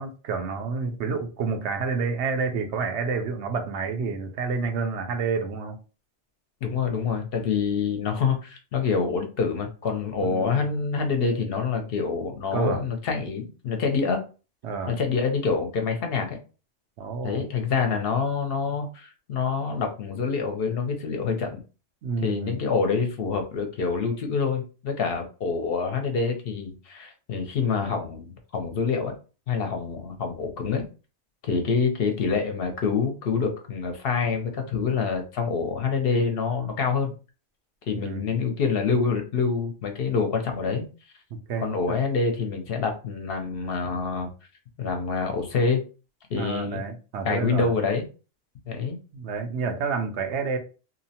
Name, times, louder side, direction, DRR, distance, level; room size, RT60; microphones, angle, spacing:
voice 1, 0.0-5.8 10.2-10.6 12.5-12.8 14.6-14.9 17.0-17.4 22.0-22.6 37.9-38.3 41.3-42.0 46.4-47.7 49.1-50.6, right 4 dB, 80° right, 0.9 m, -29 dB
voice 2, 6.6-14.2 14.9-16.4 17.2-21.6 22.2-29.1 29.5-30.8 31.4-37.1 37.9-40.9 41.6-44.3 44.8-45.8 46.3-46.8 47.2-48.1 48.7-49.0, left 5 dB, 65° left, 0.7 m, -26 dB
2.7 x 2.0 x 2.7 m
omnidirectional pair, 1.2 m